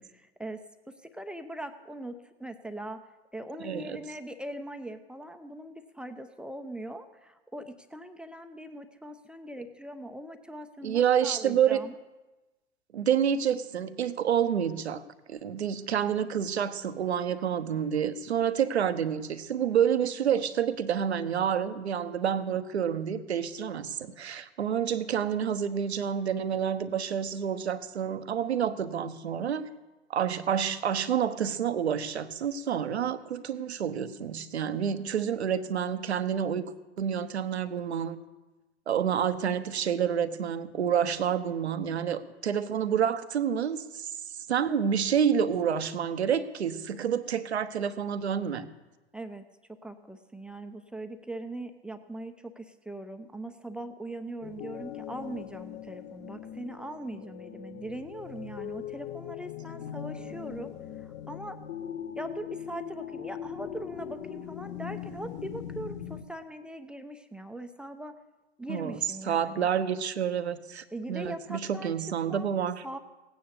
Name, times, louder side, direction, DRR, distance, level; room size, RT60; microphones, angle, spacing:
voice 1, 0.0-3.0 3.3-12.0 49.1-49.4 49.7-61.6 62.2-68.1 68.6-69.7 70.9-71.9 72.3-73.0, right 1 dB, 5° right, 7 dB, 0.7 m, -41 dB
voice 2, 3.6-4.0 10.8-11.8 12.9-15.0 15.3-29.7 30.1-38.2 38.9-44.1 44.5-48.7 68.7-72.8, right 8 dB, 70° right, 11 dB, 1.0 m, -28 dB
sound 1, 54.4-66.2, left 9 dB, 30° left, 0.9 m, -40 dB
17.0 x 9.4 x 6.9 m, 1.1 s
figure-of-eight pair, 95°, 34 cm